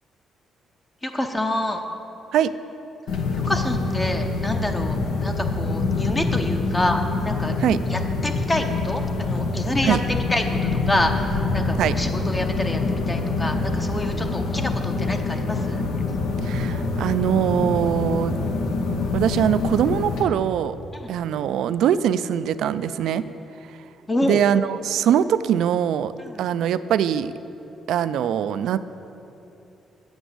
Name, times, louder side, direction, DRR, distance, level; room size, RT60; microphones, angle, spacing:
voice 1, 1.0-1.8 3.3-7.5 7.9-15.8 20.9-21.1 24.1-24.4 26.2-26.4, left 1 dB, 20° left, 4 dB, 0.6 m, -27 dB
sound 1, 3.1-20.2, left 3 dB, 90° left, 1.0 m, -25 dB
voice 2, 16.4-18.4 19.1-20.8 21.1-23.2 24.2-26.1 26.4-27.3 27.9-28.8, right 9 dB, 80° right, 14 dB, 0.3 m, -22 dB
8.0 x 6.1 x 8.0 m, 2.9 s
cardioid pair, 90°, 0 cm